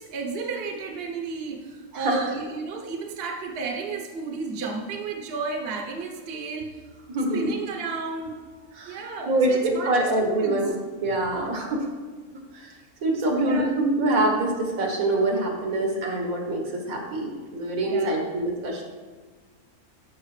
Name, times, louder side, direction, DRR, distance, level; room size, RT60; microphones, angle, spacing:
voice 1, 0.0-6.8 7.3-10.8 11.3-11.7 13.3-13.7 17.8-18.3, right 4 dB, 50° right, 2 dB, 1.0 m, -33 dB
voice 2, 7.1-7.5 8.8-9.0 9.3-10.7 11.0-11.9 12.5-12.7 13.0-18.8, right 1 dB, 75° right, 1 dB, 1.8 m, -25 dB
13.0 x 5.3 x 3.3 m, 1.4 s
omnidirectional pair, 1.5 m